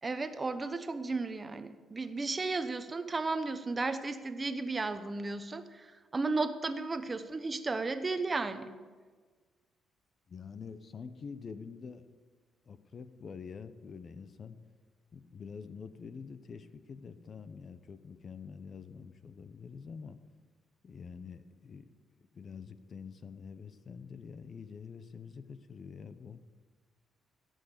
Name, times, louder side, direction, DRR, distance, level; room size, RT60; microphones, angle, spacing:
voice 1, 0.0-8.7, right 3 dB, 25° right, 10 dB, 0.9 m, -34 dB
voice 2, 10.3-12.0 12.6-14.6 15.1-20.2 20.8-21.9 22.3-26.4, left 5 dB, 45° left, 12 dB, 0.8 m, -46 dB
17.0 x 6.5 x 6.7 m, 1.4 s
cardioid pair, 90°, 0 cm